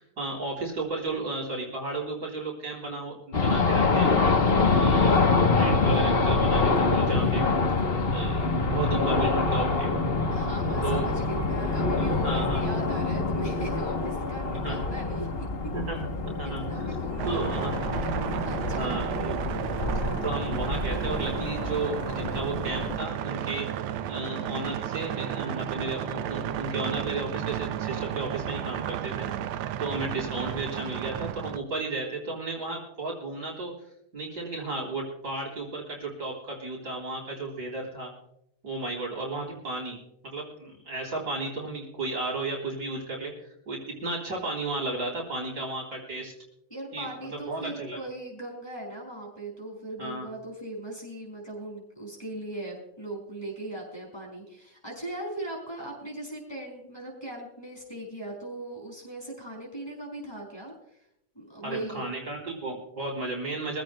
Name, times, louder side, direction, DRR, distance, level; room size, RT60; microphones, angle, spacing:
voice 1, 0.0-4.2 4.8-7.4 8.1-9.9 10.8-11.4 12.0-12.7 14.6-14.8 15.7-16.1 16.4-17.0 17.2-17.7 18.8-19.6 20.2-29.3 29.8-33.7 34.1-38.1 38.6-40.0 40.2-46.3 46.9-48.0 50.0-50.3 61.6-63.8, right 2 dB, 45° right, -1 dB, 3.8 m, -34 dB
sound 1, 3.3-23.0, left 3 dB, 40° left, 0.8 m, -26 dB
voice 2, 10.3-15.7 16.2-17.6 17.9-19.0 46.7-60.7 61.3-62.0, right 1 dB, 10° left, -2 dB, 5.6 m, -39 dB
sound 2, 17.2-31.6, right 10 dB, 85° right, 1.6 m, -33 dB
23.5 x 15.5 x 2.2 m, 0.79 s
omnidirectional pair, 2.4 m